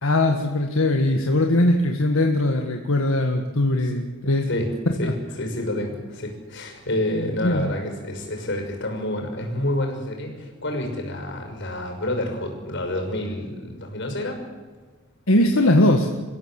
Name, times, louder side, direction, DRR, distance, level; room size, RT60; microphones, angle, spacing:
voice 1, 0.0-4.5 5.0-5.1 7.4-7.7 15.3-16.1, left 1 dB, 80° left, 3 dB, 1.8 m, -20 dB
voice 2, 5.4-14.4, left 1 dB, 60° left, 3 dB, 6.2 m, -28 dB
28.0 x 15.5 x 7.7 m, 1.4 s
head